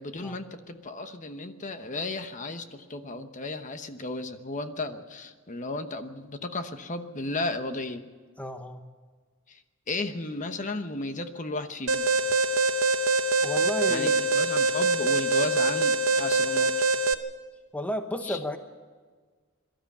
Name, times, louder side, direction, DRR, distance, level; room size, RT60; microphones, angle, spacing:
voice 1, 0.0-8.0 9.5-9.6 9.9-12.1 13.9-16.7 18.2-18.4, left 2 dB, 40° left, 8 dB, 1.0 m, -34 dB
voice 2, 8.4-8.8 13.4-14.2 17.7-18.6, equal, 5° left, 7 dB, 1.0 m, -32 dB
Alarm, 11.9-17.1, right 2 dB, 80° right, 1.0 m, -24 dB
23.5 x 13.0 x 8.5 m, 1.5 s
head